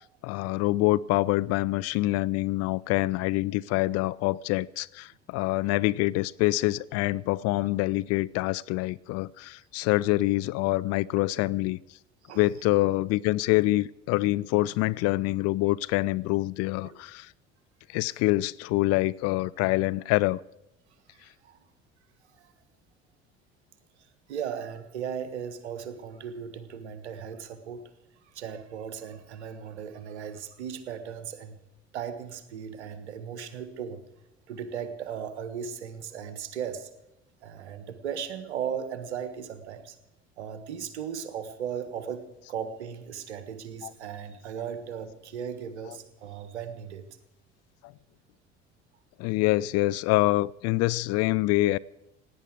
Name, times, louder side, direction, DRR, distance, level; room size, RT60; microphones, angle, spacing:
voice 1, 0.2-11.8 12.3-17.3 17.9-20.4 43.8-43.9 45.9-46.0 47.8-47.9 49.2-51.8, left 19 dB, 45° left, 19 dB, 0.5 m, -26 dB
voice 2, 21.1-21.6 22.3-22.5 24.3-27.8 28.3-31.6 31.9-34.0 34.5-36.9 37.4-39.9 40.4-47.1, right 8 dB, 75° right, 11 dB, 1.5 m, -37 dB
17.0 x 10.0 x 7.9 m, 0.88 s
figure-of-eight pair, 60°, 34 cm